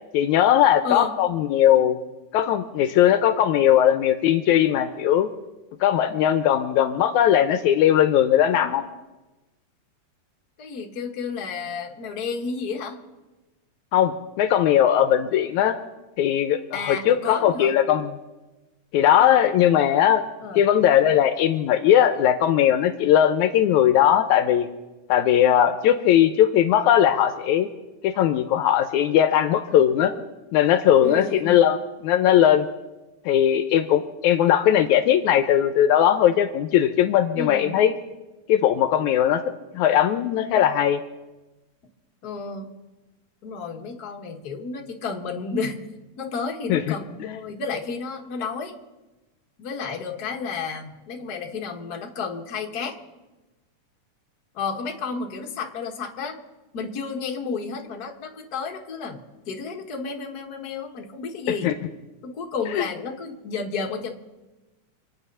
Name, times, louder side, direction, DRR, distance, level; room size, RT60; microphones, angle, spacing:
voice 1, 0.1-2.0 2.3-5.3 5.8-8.8 13.9-15.8 16.2-18.1 18.9-20.2 20.6-24.7 25.1-27.7 28.0-30.1 30.5-31.8 32.0-32.7 33.3-37.9 38.5-39.4 39.7-41.0 46.7-46.9 61.6-61.7 62.8-62.9, left 10 dB, 80° left, 9 dB, 2.0 m, -19 dB
voice 2, 0.8-1.1 10.6-13.0 16.7-17.7 20.4-20.6 31.0-31.7 37.3-37.8 42.2-42.7 43.4-45.9 46.2-48.8 49.6-53.0 54.5-56.4 56.7-61.7 62.2-64.1, left 5 dB, 40° left, 2 dB, 1.6 m, -31 dB
26.5 x 9.7 x 5.5 m, 1.1 s
omnidirectional pair, 3.6 m